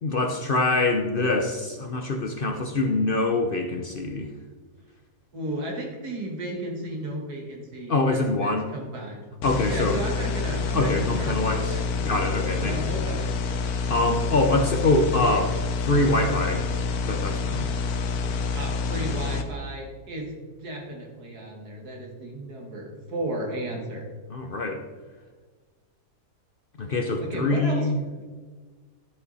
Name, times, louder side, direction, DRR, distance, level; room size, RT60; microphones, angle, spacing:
voice 1, 0.0-4.3 7.9-8.7 9.4-10.0 10.7-11.8 12.0-12.9 13.9-15.6 15.8-16.7 17.0-17.7 24.3-24.8 26.8-28.0, left 2 dB, 45° left, 4 dB, 0.7 m, -24 dB
voice 2, 5.3-9.2 9.7-12.0 12.6-13.5 18.5-24.1 27.2-27.9, right 1 dB, 90° right, 0 dB, 2.5 m, -34 dB
sound 1, 9.4-19.4, left 4 dB, 75° left, 1.3 m, -28 dB
12.0 x 8.1 x 4.1 m, 1.4 s
omnidirectional pair, 1.6 m